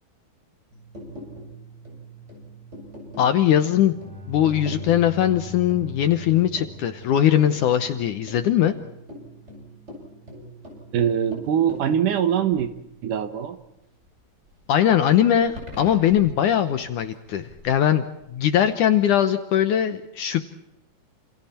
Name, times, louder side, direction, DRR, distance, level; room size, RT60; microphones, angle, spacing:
sound 1, 0.7-14.1 14.5-17.8 18.2-18.5, equal, 15° right, 7.8 m, -43 dB
voice 1, 3.2-3.9 4.3-8.7 14.7-18.0 18.3-20.4, left 10 dB, 70° left, 9 dB, 2.1 m, -20 dB
Bowed string instrument, 3.7-7.7, left 4 dB, ahead, 5.8 m, -42 dB
voice 2, 10.9-12.7 13.0-13.6, right 9 dB, 65° right, 9 dB, 2.6 m, -22 dB
29.0 x 28.5 x 4.4 m, 0.84 s
omnidirectional pair, 4.5 m